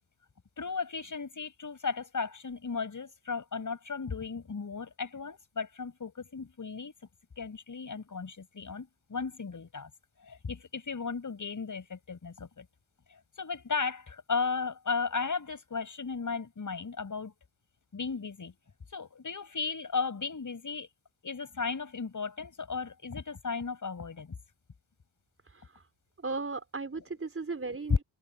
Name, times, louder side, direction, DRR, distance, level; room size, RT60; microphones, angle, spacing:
voice 1, 0.6-6.9 7.4-9.9 10.2-12.7 13.1-17.3 17.9-18.5 18.9-20.9 21.2-24.4 26.9-27.0, left 5 dB, 40° left, 6.1 m, -35 dB
voice 2, 25.5-25.8 26.2-28.0, right 3 dB, 30° right, 4.9 m, -36 dB
cardioid pair, 100°, 45 cm